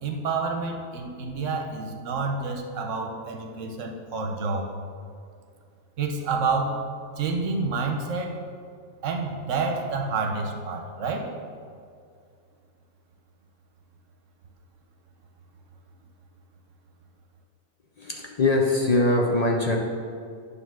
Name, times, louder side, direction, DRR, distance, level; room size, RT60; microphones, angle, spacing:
voice 1, 0.0-4.7 6.0-6.8 7.2-8.4 9.0-11.3, right 4 dB, 65° right, 2 dB, 1.1 m, -28 dB
voice 2, 18.0-19.8, left 2 dB, 70° left, 0 dB, 0.3 m, -22 dB
9.4 x 3.4 x 6.1 m, 2.3 s
omnidirectional pair, 1.5 m